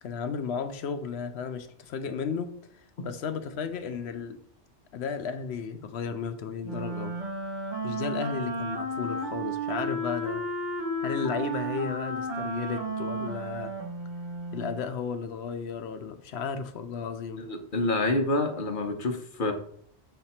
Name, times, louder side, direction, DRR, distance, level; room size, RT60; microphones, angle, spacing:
voice 1, 0.0-4.4 4.9-7.2 7.8-10.4 11.0-13.7 14.5-17.4, left 6 dB, 75° left, 0.8 m, -34 dB
Wind instrument woodwind instrument, 6.6-14.8, right 1 dB, 45° right, 1.3 m, -33 dB
voice 2, 17.4-19.5, left 2 dB, 50° left, 1.0 m, -27 dB
6.6 x 3.4 x 4.2 m
omnidirectional pair, 1.1 m